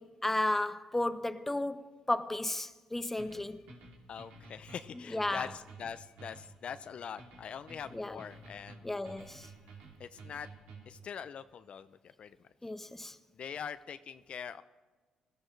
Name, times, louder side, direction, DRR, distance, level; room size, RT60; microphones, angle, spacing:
voice 1, 0.0-3.6 5.1-5.5 7.9-8.2 8.8-9.5 12.6-13.2, left 1 dB, 10° left, 0.8 m, -34 dB
sound 1, 3.2-11.1, right 3 dB, 80° right, 2.9 m, -52 dB
voice 2, 4.1-8.8 10.0-10.5 10.9-12.4 13.4-14.6, left 7 dB, 55° left, 0.5 m, -43 dB
19.5 x 13.5 x 3.3 m
supercardioid pair, 65°, 2 cm